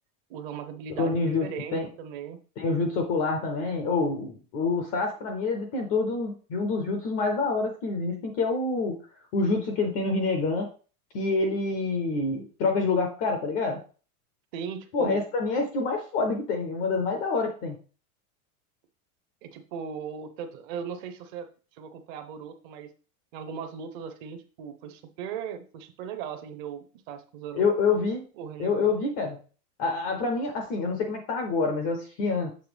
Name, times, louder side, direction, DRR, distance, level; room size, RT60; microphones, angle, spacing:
voice 1, 0.3-2.4 14.5-15.2 19.4-21.5 21.7-22.9 23.3-27.7 28.4-28.9, right 7 dB, 35° right, 8 dB, 0.7 m, -38 dB
voice 2, 1.0-1.9 2.6-9.0 9.3-10.7 11.1-13.8 14.9-17.8 27.5-28.2 28.6-29.4 29.8-32.5, left 3 dB, 20° left, 4 dB, 0.4 m, -27 dB
7.1 x 3.3 x 4.9 m, 0.37 s
supercardioid pair, 170°, 44 cm